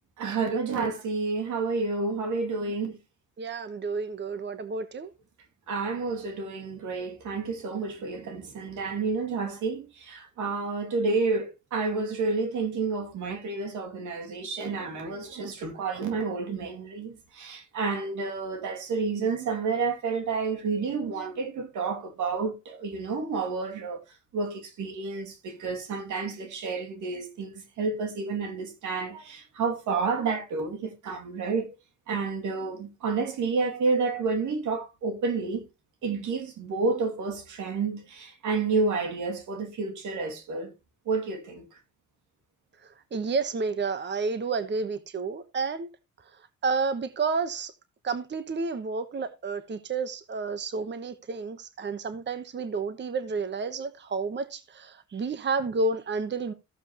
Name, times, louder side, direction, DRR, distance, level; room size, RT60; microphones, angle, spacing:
voice 1, 0.2-3.0 5.7-24.0 24.3-31.7 32.1-35.6 36.0-40.7 41.1-41.6, right 4 dB, 75° right, 2.5 m, -30 dB
voice 2, 3.4-5.1 43.1-45.9 46.6-47.7 48.0-56.5, right 4 dB, 35° right, 1.1 m, -30 dB
14.5 x 7.4 x 3.0 m
cardioid pair, 90°, 30 cm